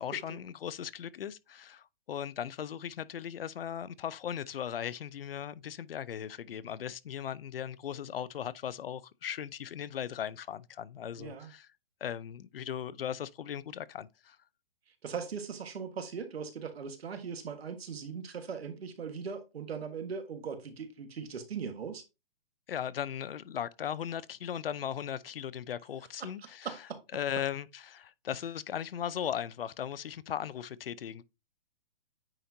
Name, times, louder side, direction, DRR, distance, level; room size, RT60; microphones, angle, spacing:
voice 1, 0.0-11.7 12.0-14.4 22.7-26.7 27.1-31.2, left 9 dB, 70° left, 0.6 m, -38 dB
voice 2, 11.2-11.5 14.9-22.0 26.2-27.0, right 6 dB, 85° right, 1.7 m, -40 dB
8.9 x 4.4 x 2.7 m
hypercardioid pair, 175°, 30 cm